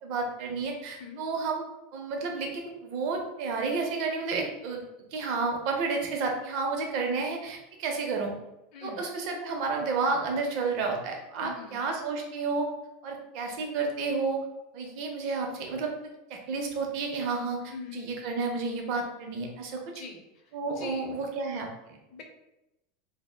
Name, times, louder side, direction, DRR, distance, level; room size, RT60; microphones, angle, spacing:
voice 1, 0.0-1.6 1.9-4.8 5.1-8.3 8.8-12.7 13.0-14.4 14.7-15.9 16.3-19.8 20.5-22.0, right 4 dB, 55° right, 2 dB, 0.5 m, -31 dB
voice 2, 8.7-9.1 11.4-11.8 17.7-18.1 19.9-21.1 22.1-22.2, left 4 dB, 45° left, 3 dB, 0.5 m, -43 dB
2.1 x 2.0 x 3.1 m, 0.93 s
supercardioid pair, 145°, 0 cm